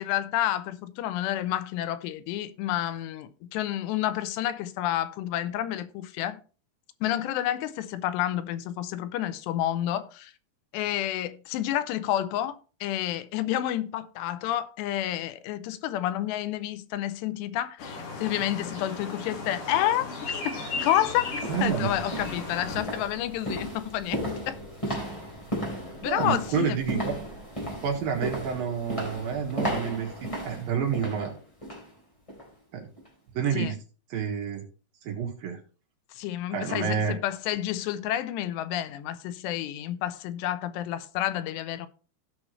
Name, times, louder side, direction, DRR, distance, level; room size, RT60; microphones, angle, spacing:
voice 1, 0.0-6.4 7.0-10.3 10.7-21.3 21.6-24.6 26.0-26.8 33.5-33.8 36.1-41.9, left 12 dB, 80° left, 2.8 m, -29 dB
sound 1, 17.8-22.8, left 3 dB, 55° left, 3.4 m, -36 dB
sound 2, 20.0-20.1 20.7-31.9 32.3-32.5 33.0-33.1, equal, 10° left, 3.2 m, -35 dB
voice 2, 21.5-21.9 26.0-27.1 27.8-31.3 32.7-32.9 33.3-33.8 34.1-34.6 35.0-35.6 36.5-37.1, right 7 dB, 60° right, 3.3 m, -29 dB
16.0 x 6.0 x 3.1 m
omnidirectional pair, 5.0 m